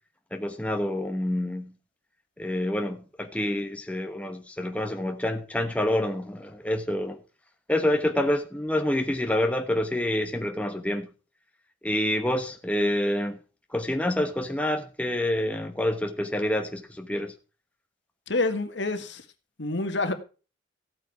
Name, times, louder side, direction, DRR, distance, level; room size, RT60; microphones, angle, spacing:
voice 1, 0.3-1.7 2.4-7.2 7.7-11.1 11.8-13.4 13.7-17.3, left 1 dB, 5° left, 1.0 m, -27 dB
voice 2, 18.3-19.2 19.6-20.1, left 2 dB, 65° left, 1.6 m, -27 dB
15.0 x 8.8 x 4.7 m
head